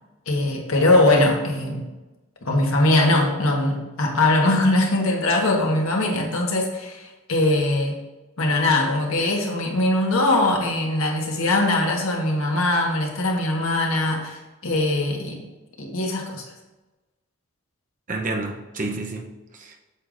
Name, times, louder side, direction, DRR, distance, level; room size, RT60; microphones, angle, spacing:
voice 1, 0.3-1.9 2.4-8.0 8.4-15.4 15.8-16.4, left 2 dB, 75° left, 1 dB, 1.3 m, -21 dB
voice 2, 18.1-19.8, right 2 dB, 35° right, 2 dB, 0.7 m, -30 dB
8.3 x 6.8 x 2.6 m, 1.1 s
head